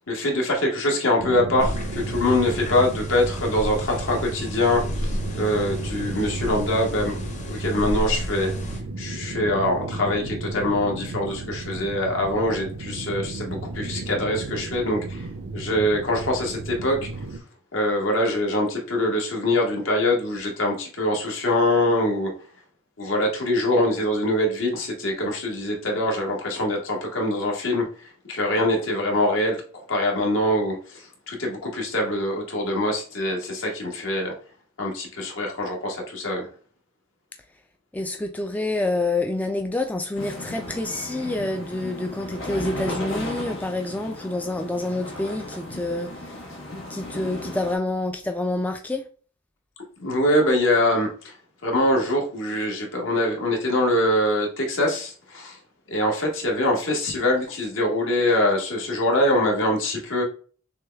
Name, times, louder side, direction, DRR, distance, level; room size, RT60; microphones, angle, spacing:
voice 1, 0.1-7.2 7.4-8.5 9.0-15.3 15.5-17.2 17.7-22.3 23.0-29.6 29.9-34.3 34.8-36.5 50.0-51.3 51.6-55.6 55.9-60.2, left 1 dB, 70° left, 1.5 m, -24 dB
sound 1, 1.2-17.4, right 3 dB, 55° right, 0.5 m, -34 dB
sound 2, 1.6-8.8, equal, 35° left, 1.0 m, -31 dB
voice 2, 37.9-46.4 46.9-49.1, left 2 dB, 10° left, 0.3 m, -27 dB
sound 3, 40.1-47.7, left 1 dB, 90° left, 1.4 m, -35 dB
6.3 x 2.3 x 3.4 m
head